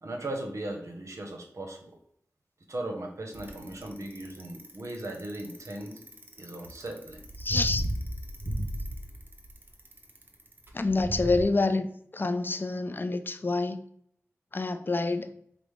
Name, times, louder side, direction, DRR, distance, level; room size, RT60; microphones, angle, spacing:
voice 1, 0.0-2.0 2.7-6.0 6.4-7.2, right 1 dB, 70° right, 2 dB, 0.8 m, -37 dB
Bicycle, 3.3-11.4, right 1 dB, 40° right, 0.7 m, -35 dB
voice 2, 7.4-7.8 10.7-13.8 14.5-15.3, left 3 dB, 40° left, 9 dB, 0.3 m, -27 dB
4.9 x 2.0 x 3.2 m, 0.67 s
cardioid pair, 45°, 5 cm